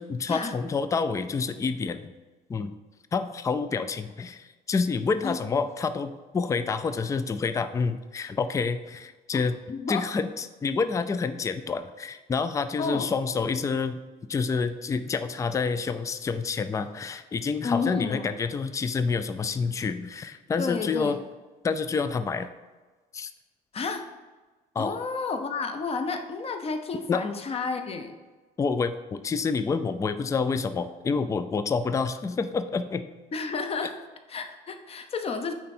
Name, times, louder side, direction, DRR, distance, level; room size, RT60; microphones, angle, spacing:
voice 1, 0.0-2.1 2.5-2.7 3.1-9.6 9.9-14.0 14.3-21.2 21.6-22.5 23.1-23.3 24.8-25.0 27.1-27.2 28.6-33.0, left 5 dB, 20° left, 10 dB, 0.3 m, -28 dB
voice 2, 9.7-10.0 12.8-13.1 17.6-18.4 20.6-21.1 23.7-24.1 24.8-28.1 33.3-34.0 34.3-35.5, left 4 dB, 35° left, 6 dB, 0.8 m, -31 dB
9.1 x 3.3 x 4.3 m, 1.3 s
cardioid pair, 110°, 17 cm